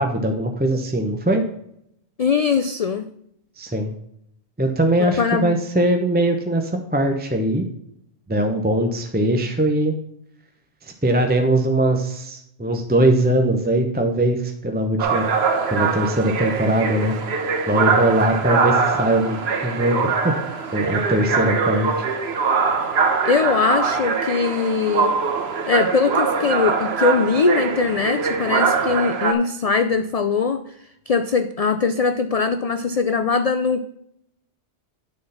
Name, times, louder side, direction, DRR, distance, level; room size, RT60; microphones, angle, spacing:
voice 1, 0.0-1.4 3.6-3.9 4.6-7.6 8.3-9.9 10.8-15.3 15.7-17.2 17.7-20.4 20.7-22.1, right 1 dB, 10° right, 5 dB, 0.6 m, -21 dB
voice 2, 2.2-3.1 5.0-5.5 23.2-25.2 25.7-30.6 31.1-33.8, left 5 dB, 65° left, 9 dB, 0.3 m, -21 dB
sound 1, 15.0-29.3, right 5 dB, 60° right, 1.1 m, -22 dB
9.8 x 4.4 x 5.6 m, 0.74 s
omnidirectional pair, 1.2 m